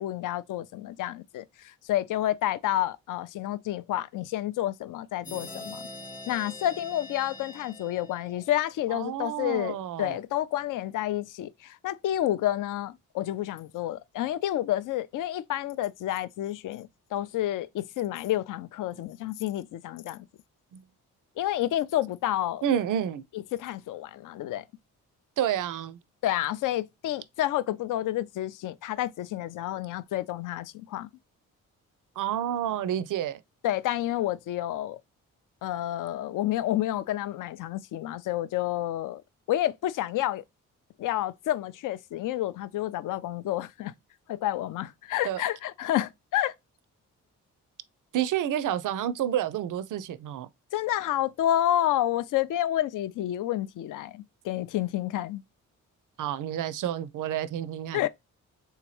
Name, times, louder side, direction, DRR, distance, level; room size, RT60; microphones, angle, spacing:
voice 1, 0.0-5.8 6.3-20.2 21.4-22.6 23.5-24.6 26.2-31.1 33.6-35.0 35.6-39.2 39.5-40.4 41.0-43.9 44.3-46.5 50.7-55.4 57.9-58.1, left 13 dB, 55° left, 0.4 m, -29 dB
sound 1, 5.2-8.8, left 2 dB, 20° left, 0.9 m, -43 dB
voice 2, 8.9-10.2 20.7-20.8 22.6-23.2 25.4-26.0 32.2-33.4 45.2-45.4 48.1-50.5 56.2-58.1, right 10 dB, 55° right, 0.5 m, -29 dB
3.5 x 2.8 x 3.1 m
hypercardioid pair, 40°, 39 cm